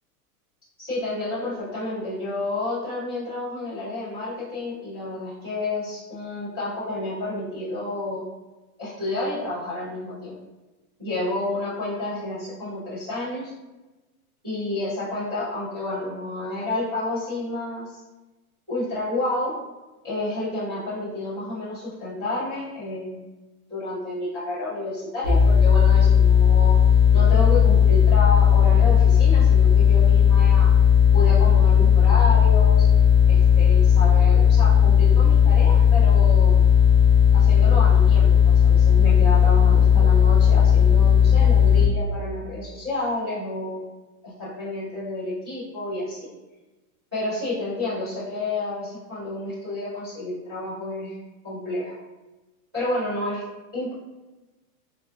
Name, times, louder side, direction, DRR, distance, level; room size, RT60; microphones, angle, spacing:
voice 1, 0.8-8.2 8.8-10.4 11.0-13.5 14.4-18.0 18.7-19.5 20.0-23.2 23.7-26.8 27.1-30.7 31.1-32.9 33.3-36.6 37.3-43.8 44.2-46.3 47.1-51.2 51.4-52.0 52.7-53.4 53.7-53.9, left 2 dB, 20° right, -15 dB, 0.3 m, -30 dB
sound 1, 25.2-41.9, left 8 dB, 50° right, 1.0 m, -16 dB
3.3 x 2.3 x 2.2 m, 1.1 s
supercardioid pair, 180°, 46 cm